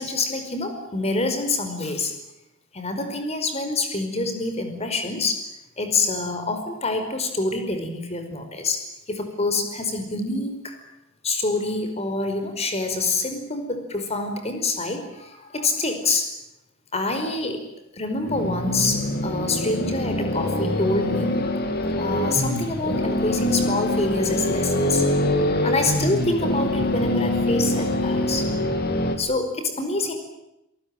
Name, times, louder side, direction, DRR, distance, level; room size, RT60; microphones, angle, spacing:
voice 1, 0.0-2.1 2.7-5.4 5.8-8.8 9.1-10.8 11.2-16.3 16.9-17.6 17.9-21.4 22.0-25.0 25.6-28.6 29.2-30.1, left 3 dB, 30° left, 6 dB, 5.2 m, -26 dB
sound 1, 18.2-29.2, left 1 dB, 50° left, 3.2 m, -24 dB
28.0 x 19.0 x 9.1 m, 0.86 s
head